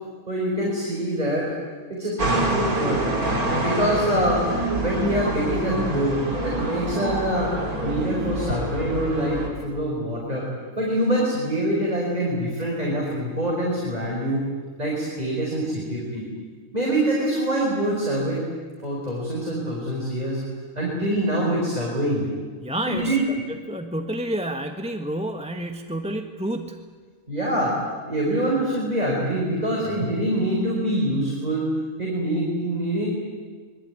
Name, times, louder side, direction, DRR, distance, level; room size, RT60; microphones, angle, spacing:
voice 1, 0.3-1.6 1.9-2.2 2.5-3.1 3.6-4.5 4.8-7.5 7.8-10.5 10.8-14.4 14.8-16.2 16.7-18.4 18.8-20.4 20.8-22.3 22.9-23.3 27.3-27.8 28.1-31.7 32.0-33.1, right 1 dB, 25° right, -3 dB, 5.4 m, -25 dB
sound 1, 2.2-9.5, right 1 dB, 85° right, 3.8 m, -26 dB
voice 2, 22.6-26.9, right 1 dB, 5° right, 5 dB, 1.2 m, -30 dB
25.0 x 22.0 x 9.7 m, 1.5 s
omnidirectional pair, 1.5 m